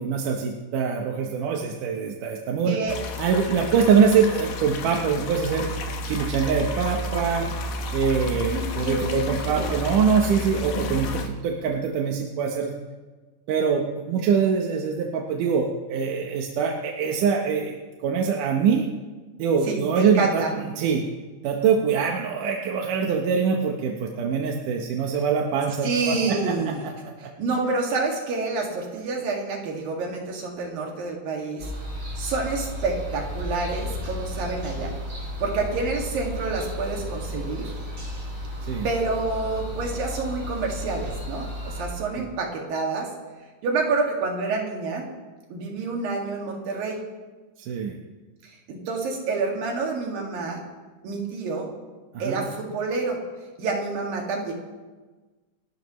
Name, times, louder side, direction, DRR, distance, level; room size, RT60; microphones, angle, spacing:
voice 1, 0.0-2.8 3.2-5.7 6.1-7.5 7.9-12.7 13.5-17.7 18.0-18.9 19.4-20.4 20.8-21.0 21.4-27.3 38.6-38.9 42.2-42.3 47.6-48.0 52.1-52.4, right 6 dB, 75° right, 1 dB, 2.6 m, -24 dB
voice 2, 2.6-3.0 3.5-3.6 8.4-9.8 19.6-20.5 25.8-26.8 27.4-31.7 32.2-34.9 35.4-37.8 38.8-43.1 43.6-45.0 45.5-47.0 48.4-50.6 51.0-51.7 52.2-53.2 53.6-54.5, right 3 dB, 90° right, 0 dB, 4.0 m, -28 dB
sound 1, 2.9-11.3, left 2 dB, 85° left, 3.1 m, -31 dB
sound 2, 31.6-41.8, equal, 35° right, 5.3 m, -33 dB
29.0 x 12.5 x 3.2 m, 1.3 s
omnidirectional pair, 3.9 m